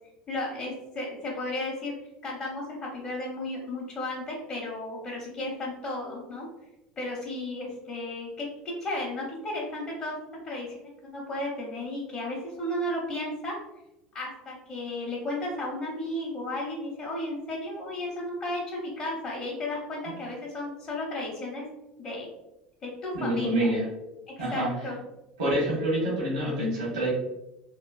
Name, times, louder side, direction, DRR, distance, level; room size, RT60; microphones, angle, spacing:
voice 1, 0.3-1.9 2.2-2.6 2.9-6.5 7.0-8.5 8.8-10.1 10.4-13.6 14.1-21.6 22.0-22.3 22.8-23.7 24.4-25.0, left 1 dB, 35° left, -4 dB, 0.8 m, -34 dB
voice 2, 23.1-23.8 24.4-24.7 25.4-27.1, right 1 dB, 80° right, -5 dB, 1.0 m, -27 dB
3.0 x 2.0 x 2.3 m, 0.93 s
hypercardioid pair, 90°, 4 cm